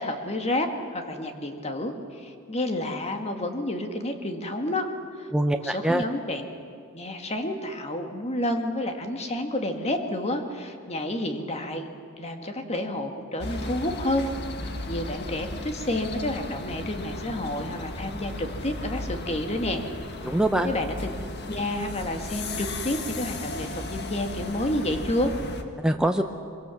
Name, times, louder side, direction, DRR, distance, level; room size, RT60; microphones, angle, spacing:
voice 1, 0.0-4.9 5.2-5.3 5.6-6.4 6.9-11.9 12.2-14.3 14.6-19.8 20.2-20.4 20.6-21.1 21.5-25.3, left 1 dB, 30° left, 5 dB, 1.9 m, -30 dB
voice 2, 5.3-6.0 20.3-20.7 25.8-26.2, right 1 dB, 5° right, 5 dB, 0.7 m, -23 dB
sound 1, 13.4-25.6, left 2 dB, 50° left, 1.7 m, -35 dB
23.5 x 23.0 x 7.1 m, 2.3 s
head